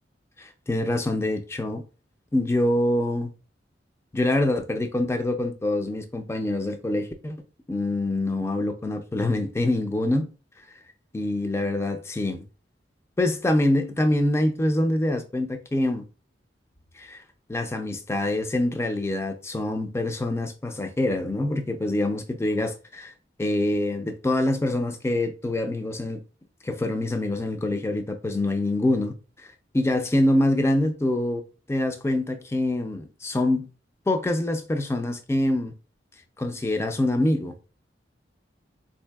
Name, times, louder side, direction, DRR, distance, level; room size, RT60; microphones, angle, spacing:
voice 1, 0.4-1.8 2.3-3.3 4.1-7.4 7.7-10.3 11.1-12.4 13.2-16.0 17.0-17.2 17.5-23.1 23.4-26.2 26.6-29.1 29.7-31.4 31.7-33.7 34.1-35.7 36.4-37.5, left 1 dB, 15° left, 0.3 m, -25 dB
3.7 x 2.6 x 2.2 m
head